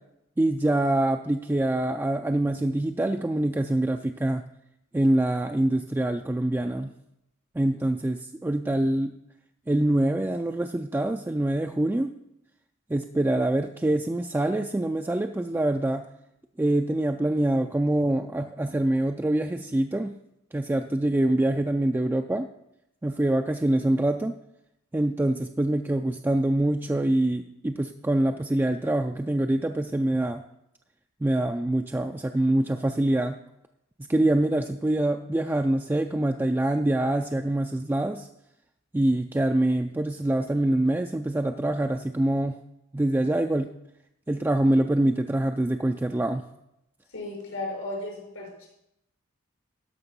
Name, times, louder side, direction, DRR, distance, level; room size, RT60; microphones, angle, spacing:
voice 1, 0.4-4.4 4.9-6.9 7.6-9.1 9.7-12.1 12.9-16.0 16.6-20.1 20.5-22.5 23.0-24.3 24.9-30.4 31.2-33.4 34.1-38.3 38.9-42.6 42.9-43.7 44.3-46.4, right 1 dB, 10° right, 5 dB, 0.3 m, -25 dB
voice 2, 47.1-48.7, left 2 dB, 80° left, -1 dB, 4.6 m, -35 dB
13.0 x 5.6 x 5.4 m, 0.84 s
head